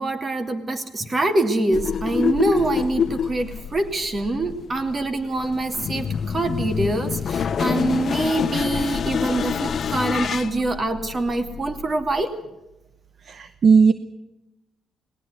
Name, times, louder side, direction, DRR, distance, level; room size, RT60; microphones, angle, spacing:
voice 1, 0.0-12.4, right 2 dB, 30° right, 8 dB, 2.7 m, -25 dB
sound 1, 1.7-12.2, left 7 dB, 50° left, 0.8 m, -27 dB
voice 2, 13.3-13.9, right 5 dB, 50° right, 13 dB, 0.9 m, -16 dB
19.5 x 18.5 x 8.2 m, 0.94 s
cardioid pair, 90°, 0 cm